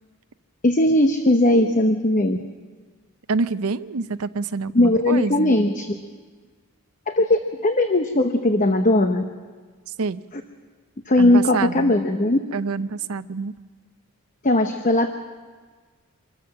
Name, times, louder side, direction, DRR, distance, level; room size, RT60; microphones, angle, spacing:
voice 1, 0.6-2.4 4.7-5.9 7.1-9.2 11.1-12.4 14.4-15.1, left 1 dB, 35° left, 6 dB, 0.9 m, -18 dB
voice 2, 3.3-5.6 10.0-10.2 11.2-12.0 12.5-13.5, right 4 dB, 70° right, 12 dB, 0.6 m, -26 dB
25.5 x 14.0 x 7.6 m, 1.5 s
head